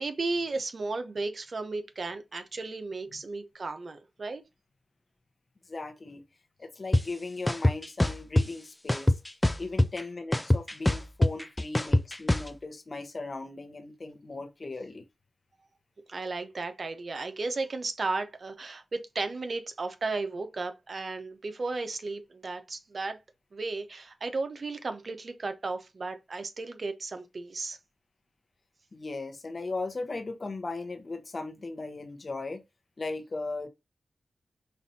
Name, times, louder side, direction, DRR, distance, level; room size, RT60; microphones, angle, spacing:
voice 1, 0.0-4.4 16.1-23.2 23.5-27.8, right 3 dB, 60° right, 0.8 m, -34 dB
voice 2, 5.7-6.2 6.6-9.2 9.6-15.0 28.9-32.6 33.0-33.7, left 3 dB, 55° left, 0.9 m, -37 dB
sound 1, 6.9-7.0 7.5-8.4 8.9-10.0 10.3-12.5, left 1 dB, 15° left, 0.4 m, -23 dB
5.5 x 2.6 x 2.8 m
cardioid pair, 50°, 0 cm